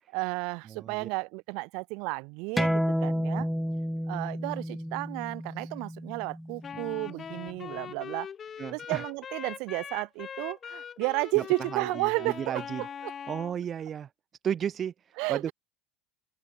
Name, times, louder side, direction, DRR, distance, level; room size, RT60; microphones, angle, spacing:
voice 1, 0.1-3.5 4.1-8.3 8.7-12.6 15.2-15.4, right 30 dB, 65° right, 2.2 m, -32 dB
voice 2, 0.7-1.1 8.6-9.0 11.3-11.4 11.7-12.9 13.3-14.1 14.4-15.5, right 8 dB, 30° right, 0.8 m, -34 dB
sound 1, 2.6-7.7, equal, ahead, 0.3 m, -31 dB
Wind instrument woodwind instrument, 6.6-13.6, left 7 dB, 25° left, 1.1 m, -42 dB
supercardioid pair, 130°, 0 cm